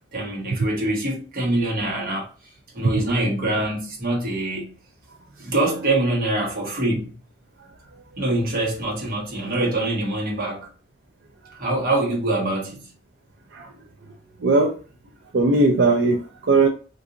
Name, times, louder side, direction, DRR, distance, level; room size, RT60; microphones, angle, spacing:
voice 1, 0.1-2.3 2.7-4.7 5.4-7.2 8.2-10.7 11.6-12.9, right 2 dB, 50° right, 1.2 m, -24 dB
voice 2, 14.4-14.7 15.3-16.7, right 3 dB, 85° right, 0.4 m, -19 dB
3.8 x 2.6 x 2.5 m
head